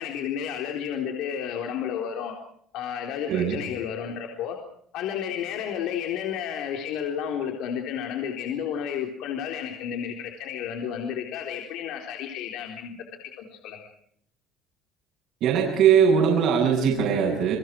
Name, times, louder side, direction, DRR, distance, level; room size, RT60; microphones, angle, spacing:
voice 1, 0.0-2.3 2.7-4.6 4.9-13.0 13.4-13.9, left 8 dB, 65° left, 2 dB, 3.8 m, -31 dB
voice 2, 3.3-3.6 15.4-17.6, right 7 dB, 55° right, -3 dB, 7.2 m, -20 dB
29.5 x 23.5 x 4.6 m, 0.66 s
cardioid pair, 160°, 0 cm